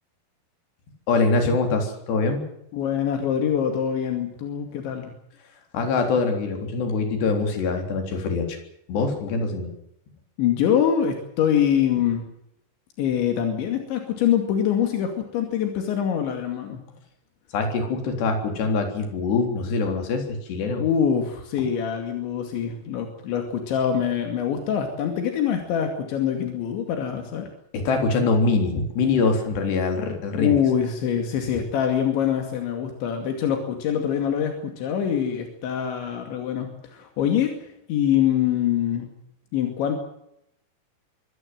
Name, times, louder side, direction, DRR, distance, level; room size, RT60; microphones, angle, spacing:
voice 1, 1.1-2.4 5.7-8.6 8.9-9.7 17.5-20.8 27.7-30.6, left 4 dB, 70° left, 4 dB, 5.8 m, -24 dB
voice 2, 2.7-5.1 10.4-12.2 13.0-16.8 20.8-27.5 30.4-37.5 37.9-39.1 39.5-40.0, left 9 dB, 85° left, 4 dB, 4.8 m, -24 dB
24.5 x 17.5 x 7.8 m, 0.78 s
omnidirectional pair, 5.1 m